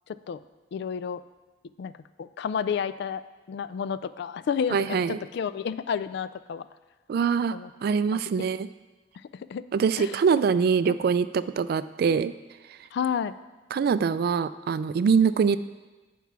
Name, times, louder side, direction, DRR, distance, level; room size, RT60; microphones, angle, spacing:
voice 1, 0.1-0.4 0.7-1.2 1.8-1.9 2.2-3.2 3.5-6.7 7.5-7.7 8.1-8.5 9.2-9.6 10.0-10.2 10.9-11.0 12.9-13.4, left 7 dB, 65° left, 15 dB, 0.3 m, -31 dB
voice 2, 4.7-5.2 7.1-8.7 9.7-12.3 13.7-15.6, right 6 dB, 55° right, 15 dB, 0.3 m, -24 dB
9.2 x 4.6 x 5.8 m, 1.2 s
head